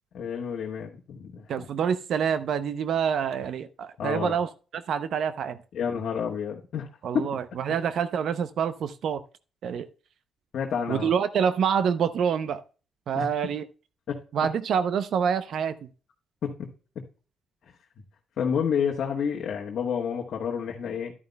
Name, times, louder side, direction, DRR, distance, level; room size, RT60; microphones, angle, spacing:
voice 1, 0.1-1.7 4.0-4.4 5.7-6.9 7.1-7.3 10.5-11.1 13.1-13.3 14.1-14.2 16.4-16.7 16.9-17.0 18.4-21.1, left 7 dB, 65° left, 1.3 m, -29 dB
voice 2, 1.5-5.6 7.0-9.2 9.6-9.9 10.9-12.6 13.1-13.7 14.3-15.8, right 7 dB, 65° right, 0.6 m, -27 dB
11.5 x 9.3 x 2.2 m
cardioid pair, 90°, 0 cm